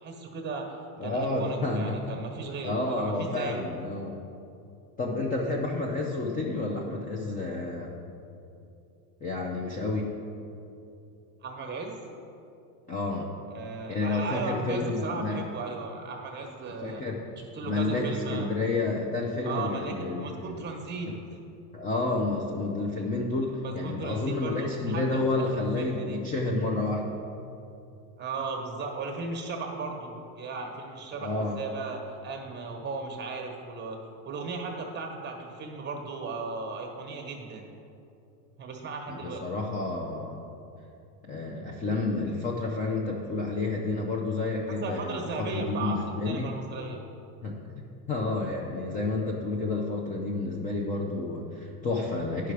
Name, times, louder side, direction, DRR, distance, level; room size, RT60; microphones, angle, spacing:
voice 1, 0.0-3.7 11.4-12.0 13.5-17.0 17.4-18.5 19.4-21.1 23.6-26.2 28.2-34.0 34.2-37.7 38.6-39.4 44.8-46.0 46.2-47.0, right 4 dB, 20° right, 2 dB, 1.1 m, -36 dB
voice 2, 1.0-2.1 2.6-4.2 5.0-7.9 9.2-10.1 12.9-13.3 13.9-15.4 16.8-17.2 17.6-20.5 21.1-21.2 21.7-27.2 31.2-31.6 39.1-40.4 41.2-46.5 47.4-47.6 48.1-52.5, left 2 dB, 20° left, -1 dB, 0.4 m, -30 dB
9.7 x 5.8 x 4.7 m, 2.7 s
supercardioid pair, 140°, 49 cm